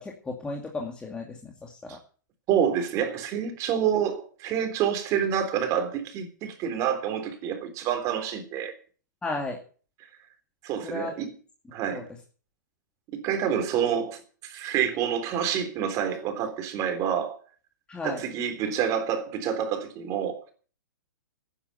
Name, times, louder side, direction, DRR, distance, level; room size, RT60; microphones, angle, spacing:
voice 1, 0.0-2.0 9.2-9.6 10.8-11.2 11.9-12.0 17.9-18.2, left 2 dB, 10° left, 2.4 m, -34 dB
voice 2, 2.5-8.7 10.6-11.3 11.7-12.0 13.1-17.4 18.0-20.5, right 8 dB, 30° right, 3.6 m, -28 dB
13.0 x 9.9 x 7.9 m
hypercardioid pair, 130°, 10 cm